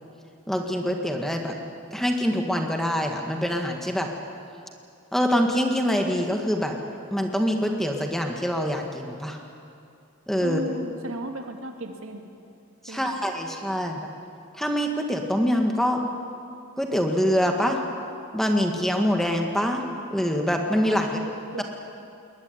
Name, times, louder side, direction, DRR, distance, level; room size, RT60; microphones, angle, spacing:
voice 1, 0.5-1.6 1.9-4.1 5.1-6.7 7.1-9.4 10.3-10.6 12.8-14.0 14.6-16.0 16.8-17.8 18.3-19.8 20.1-21.2 21.6-21.7, equal, ahead, 2 dB, 1.9 m, -24 dB
voice 2, 10.4-12.3 12.9-13.2 20.8-21.6, right 1 dB, 70° right, 4 dB, 2.4 m, -35 dB
21.5 x 19.5 x 9.8 m, 2.5 s
head